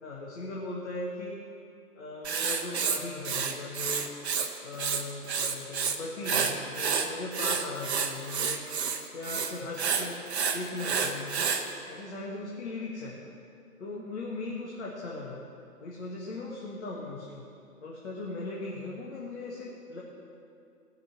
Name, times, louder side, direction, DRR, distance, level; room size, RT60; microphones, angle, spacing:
voice 1, 0.0-1.4 1.9-4.1 4.6-8.6 9.1-10.2 10.5-11.5 11.9-13.2 13.8-15.4 15.8-17.5 17.8-20.0, left 2 dB, 45° left, -4 dB, 1.9 m, -38 dB
Writing, 2.2-4.5 4.7-6.0 6.2-11.6, right 6 dB, 45° right, 1.0 m, -29 dB
18.5 x 6.2 x 5.9 m, 2.5 s
figure-of-eight pair, 135°, 46 cm